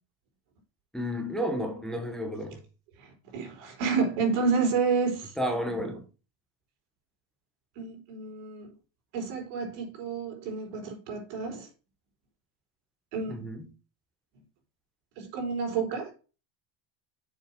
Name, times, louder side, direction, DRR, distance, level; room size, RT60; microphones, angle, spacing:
voice 1, 0.9-2.6 5.4-6.0 13.3-13.7, equal, ahead, 0.9 m, -32 dB
voice 2, 3.3-5.3 7.8-8.7 9.1-11.7 13.1-13.4 15.2-16.1, right 5 dB, 80° right, 4.4 m, -29 dB
7.2 x 5.9 x 5.8 m
cardioid pair, 160°, 48 cm